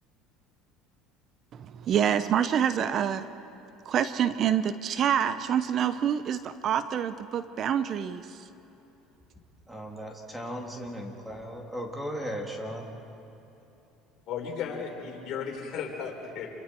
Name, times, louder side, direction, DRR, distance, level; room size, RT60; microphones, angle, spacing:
voice 1, 1.5-3.3 3.9-8.4, right 9 dB, 45° right, 12 dB, 0.8 m, -27 dB
voice 2, 9.7-12.9, equal, 10° right, 1 dB, 3.0 m, -36 dB
voice 3, 14.3-16.5, left 6 dB, 55° left, 0 dB, 4.4 m, -35 dB
28.5 x 24.0 x 4.6 m, 2.9 s
supercardioid pair, 105°, 0 cm